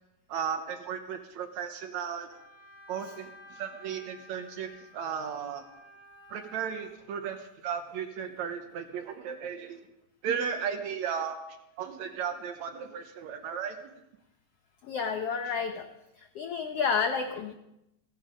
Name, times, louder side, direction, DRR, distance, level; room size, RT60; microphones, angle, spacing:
voice 1, 0.3-2.4 2.9-5.6 6.3-9.8 10.2-11.4 11.8-14.0, right 7 dB, 70° right, 7 dB, 2.0 m, -35 dB
Wind instrument woodwind instrument, 2.3-6.9, left 1 dB, 35° left, 4.5 m, -53 dB
voice 2, 14.8-15.9 16.2-17.5, left 6 dB, 80° left, 7 dB, 1.3 m, -30 dB
16.0 x 15.5 x 5.1 m, 0.87 s
omnidirectional pair, 3.9 m